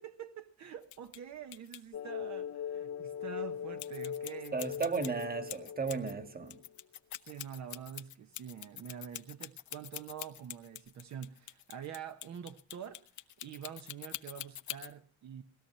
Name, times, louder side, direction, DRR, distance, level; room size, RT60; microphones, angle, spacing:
voice 1, 0.0-4.6 5.0-5.2 7.2-13.0 13.4-15.4, right 8 dB, 65° right, 1.1 m, -46 dB
sound 1, 0.8-1.2 1.5-1.8 3.8-6.1 6.5-14.9, left 13 dB, 75° left, 0.9 m, -45 dB
sound 2, 1.9-6.6, left 9 dB, 50° left, 0.7 m, -41 dB
voice 2, 4.5-6.6, right 4 dB, 30° right, 1.8 m, -35 dB
19.5 x 13.0 x 5.6 m
cardioid pair, 90°, 30 cm